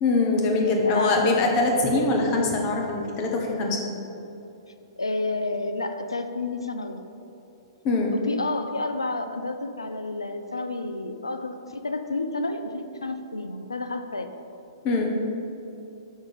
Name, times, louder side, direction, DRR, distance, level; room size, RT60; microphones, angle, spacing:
voice 1, 0.0-3.8 7.8-8.1 14.8-15.2, left 3 dB, 35° left, 0 dB, 1.1 m, -23 dB
voice 2, 0.6-1.3 1.9-2.3 5.0-7.1 8.1-14.3, left 2 dB, 85° left, 8 dB, 0.4 m, -30 dB
5.8 x 4.4 x 5.2 m, 2.8 s
figure-of-eight pair, 115°, 2 cm